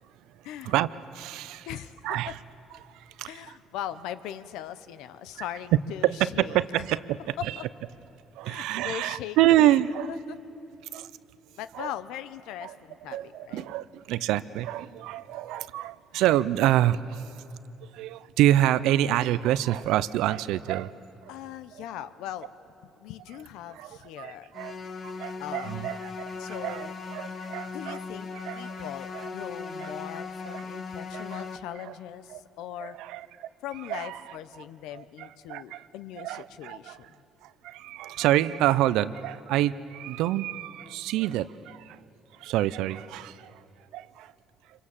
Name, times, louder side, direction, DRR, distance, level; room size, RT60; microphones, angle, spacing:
voice 1, 0.6-1.7 2.0-2.4 2.8-3.6 5.4-5.5 6.0-7.6 8.4-10.1 10.9-11.1 11.7-11.9 12.6-12.8 13.0-17.3 17.8-20.9 21.2-21.3 21.7-21.8 23.7-28.0 28.3-29.3 29.8-29.9 30.4-30.6 31.1-31.4 31.8-31.9 32.3-32.4 32.8-33.5 33.9-34.4 34.9-35.9 36.2-37.0 37.4-42.0 42.3-43.6 43.9-44.3, right 13 dB, 85° right, 16 dB, 0.6 m, -27 dB
voice 2, 1.7-2.4 3.2-6.6 7.4-7.6 8.4-9.8 10.1-10.4 11.6-13.7 21.3-22.5 23.0-24.5 25.4-25.7 26.4-26.9 27.7-33.0 33.6-37.1, left 11 dB, 85° left, 14 dB, 0.8 m, -40 dB
sound 1, 24.5-31.6, left 4 dB, 40° left, 1.5 m, -38 dB
27.0 x 23.5 x 7.4 m, 2.6 s
cardioid pair, 105°, 0 cm